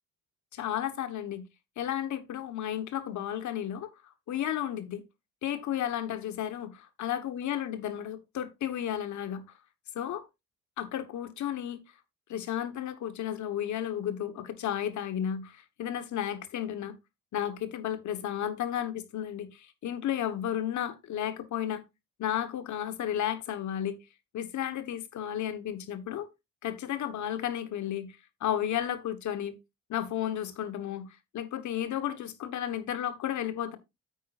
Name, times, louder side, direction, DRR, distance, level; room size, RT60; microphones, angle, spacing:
voice 1, 0.5-1.4 1.8-3.9 4.3-5.0 5.4-9.4 9.9-10.2 10.8-11.8 12.3-16.9 17.3-21.8 22.2-24.0 24.3-26.3 26.6-29.6 29.9-31.1 31.3-33.8, left 10 dB, 70° left, 1.3 m, -33 dB
9.3 x 8.4 x 2.5 m
cardioid pair, 90°, 30 cm